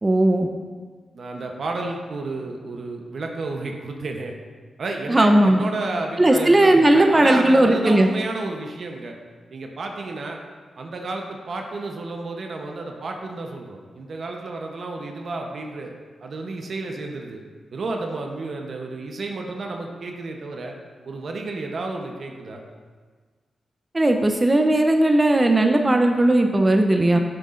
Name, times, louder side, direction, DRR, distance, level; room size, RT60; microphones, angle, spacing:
voice 1, 0.0-0.5 5.1-5.6 6.2-8.1 23.9-27.2, right 1 dB, 25° right, 4 dB, 0.6 m, -17 dB
voice 2, 1.1-4.3 4.8-9.2 9.5-10.4 10.8-15.9 16.2-17.4 17.7-20.7 21.0-22.6, right 3 dB, 65° right, 2 dB, 0.8 m, -31 dB
9.8 x 6.7 x 2.5 m, 1.5 s
cardioid pair, 60°, 0 cm